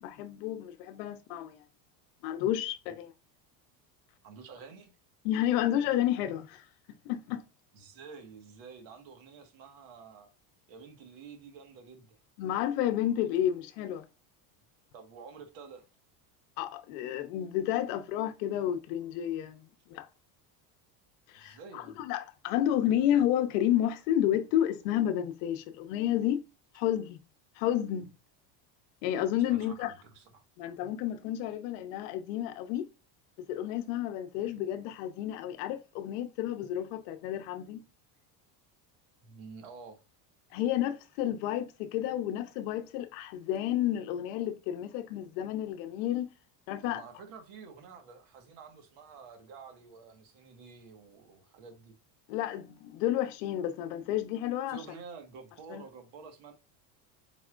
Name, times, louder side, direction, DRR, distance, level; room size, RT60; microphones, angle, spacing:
voice 1, 0.0-1.6 2.2-3.1 5.2-6.7 7.0-7.4 12.4-14.0 16.6-20.1 21.3-26.4 26.7-27.2 27.6-28.1 29.0-29.9 30.6-32.9 33.5-37.8 40.5-46.3 46.7-47.0 52.3-54.8 55.7-55.8, left 11 dB, 75° left, 0.8 m, -31 dB
voice 2, 4.2-4.9 7.7-10.3 10.7-12.2 14.9-15.9 21.3-22.0 29.5-30.4 39.2-40.0 46.8-51.9 54.7-56.5, right 5 dB, 65° right, 1.6 m, -49 dB
4.4 x 4.2 x 2.5 m
supercardioid pair, 120°, 49 cm